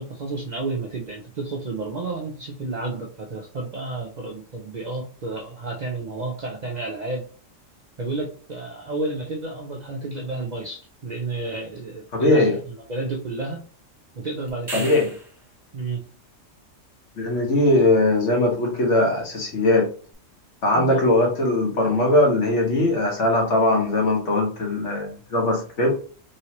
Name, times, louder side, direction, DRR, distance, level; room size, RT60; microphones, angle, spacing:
voice 1, 0.0-7.2 8.0-13.6 14.2-14.9 15.7-16.0 20.7-21.0, right 3 dB, 55° right, -1 dB, 0.5 m, -31 dB
voice 2, 12.1-12.6 14.7-15.1 17.2-19.9 20.6-25.9, left 2 dB, 65° left, 0 dB, 1.4 m, -20 dB
sound 1, 14.5-15.5 20.1-20.2, right 2 dB, 20° right, 1.1 m, -35 dB
3.1 x 3.0 x 2.9 m, 0.41 s
omnidirectional pair, 1.3 m